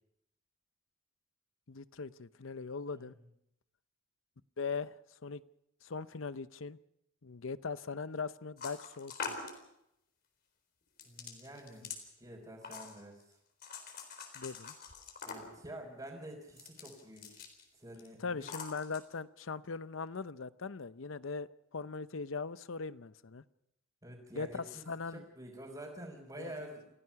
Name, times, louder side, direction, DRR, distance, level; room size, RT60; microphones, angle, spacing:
voice 1, 1.7-3.2 4.6-4.9 5.2-5.4 5.8-6.8 7.2-9.4 14.3-14.7 18.2-23.4 24.3-25.3 26.4-26.7, left 4 dB, 70° left, 0.7 m, -40 dB
sound 1, 8.6-9.6 11.0-12.0 12.6-13.2 13.6-15.6 16.5-17.6 17.9-18.1 18.4-19.0, left 5 dB, 50° left, 4.0 m, -44 dB
voice 2, 11.0-11.9 12.2-13.4 15.2-17.4 17.7-18.5 24.0-24.8 25.1-26.9, right 1 dB, 20° right, 4.3 m, -48 dB
28.5 x 16.0 x 5.8 m
head